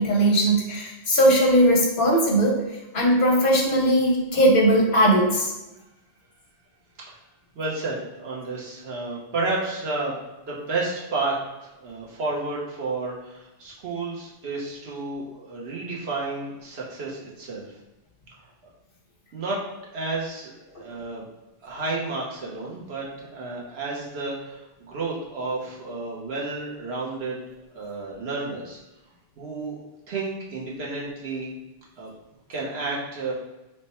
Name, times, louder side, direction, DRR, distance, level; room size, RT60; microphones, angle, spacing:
voice 1, 0.0-2.6 2.9-5.5, right 1 dB, 60° left, -2 dB, 1.0 m, -19 dB
voice 2, 7.6-10.2 10.4-11.4 11.6-17.7 19.3-19.6 19.9-21.2 21.6-27.4 27.7-28.8 29.4-29.8 30.1-31.5 32.0-32.1 32.5-33.3, right 3 dB, 80° right, -4 dB, 1.1 m, -31 dB
3.3 x 2.1 x 4.2 m, 1.0 s
omnidirectional pair, 1.1 m